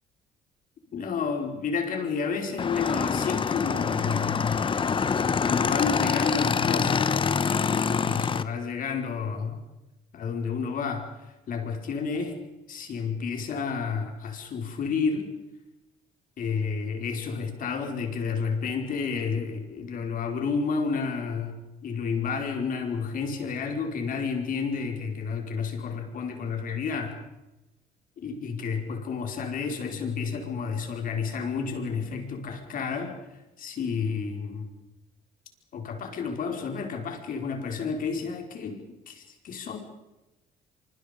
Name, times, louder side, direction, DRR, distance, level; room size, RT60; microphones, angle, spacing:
voice 1, 0.9-4.9 5.4-7.1 7.9-9.6 10.1-11.1 11.5-12.3 12.7-15.3 16.4-21.6 21.8-27.2 28.2-33.2 33.6-34.7 35.7-39.8, left 5 dB, 55° left, 4 dB, 4.9 m, -31 dB
Motorcycle / Engine, 2.6-8.4, left 6 dB, 30° left, 1.1 m, -25 dB
25.5 x 25.0 x 5.3 m, 1.0 s
cardioid pair, 110°, 17 cm